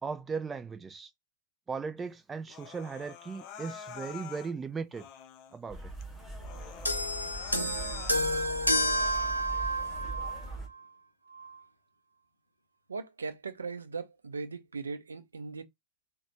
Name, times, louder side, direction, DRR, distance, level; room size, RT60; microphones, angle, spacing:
voice 1, 0.0-1.1 1.7-5.1 5.5-5.9, right 5 dB, 15° right, 0.4 m, -37 dB
Human voice, 2.5-4.5 4.9-5.6 6.0-6.1 6.4-8.5 8.9-9.5, left 8 dB, 40° left, 0.5 m, -47 dB
sound 1, 5.7-10.7, right 2 dB, 5° left, 1.7 m, -41 dB
sound 2, 6.9-10.5 11.4-11.5, equal, 85° left, 0.5 m, -30 dB
voice 2, 12.9-15.6, right 4 dB, 75° right, 0.5 m, -39 dB
4.0 x 2.2 x 2.8 m
figure-of-eight pair, 90°, 0 cm